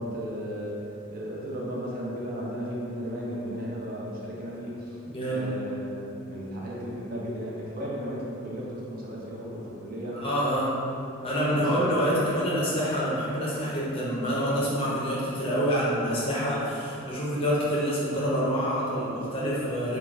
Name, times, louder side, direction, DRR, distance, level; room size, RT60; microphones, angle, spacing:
voice 1, 0.0-5.0 5.3-10.2 11.3-12.2, equal, 45° right, -4 dB, 0.4 m, -35 dB
voice 2, 5.1-5.5 10.2-10.7 11.2-20.0, equal, 25° left, -7 dB, 0.5 m, -27 dB
2.5 x 2.2 x 3.1 m, 2.7 s
head